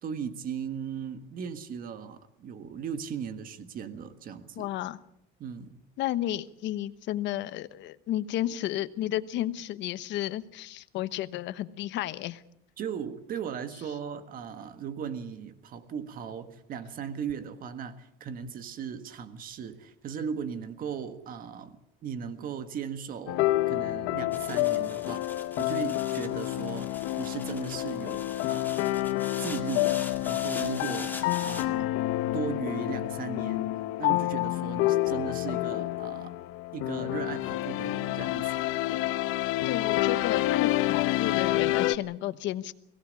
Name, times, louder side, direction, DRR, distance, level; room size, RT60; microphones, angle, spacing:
voice 1, 0.0-4.7 5.4-5.8 12.8-21.8 22.0-26.9 27.2-28.8 29.4-31.9 32.3-33.7 34.0-36.3 36.7-38.6, right 7 dB, 40° right, 10 dB, 1.6 m, -37 dB
voice 2, 4.6-5.0 6.0-12.4 39.6-42.7, left 13 dB, 60° left, 13 dB, 1.1 m, -32 dB
sound 1, 23.3-42.0, left 16 dB, 80° left, 0.9 m, -28 dB
sound 2, 24.3-31.7, left 3 dB, 10° left, 2.0 m, -43 dB
22.5 x 17.5 x 8.4 m, 0.75 s
cardioid pair, 160°, 21 cm